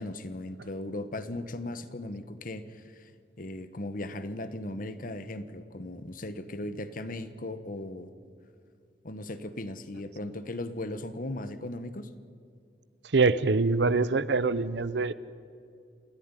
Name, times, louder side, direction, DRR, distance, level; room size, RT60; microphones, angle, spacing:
voice 1, 0.0-3.1 3.4-8.1 9.0-12.1, left 1 dB, 50° left, 12 dB, 1.1 m, -37 dB
voice 2, 13.1-15.1, right 3 dB, 75° right, 16 dB, 0.7 m, -24 dB
28.0 x 11.0 x 9.8 m, 2.4 s
head